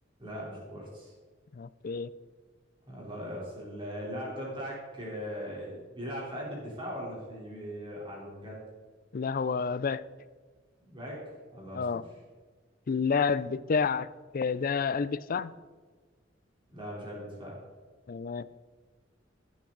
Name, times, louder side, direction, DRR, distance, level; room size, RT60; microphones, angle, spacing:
voice 1, 0.2-1.1 2.9-8.6 10.8-11.2 11.5-12.0 16.7-17.6, equal, 25° right, -4 dB, 3.5 m, -39 dB
voice 2, 1.5-2.1 9.1-10.0 11.7-12.0 12.9-14.1 14.3-15.5 18.1-18.5, left 5 dB, 50° left, 16 dB, 0.4 m, -29 dB
15.0 x 8.5 x 3.9 m, 1.5 s
head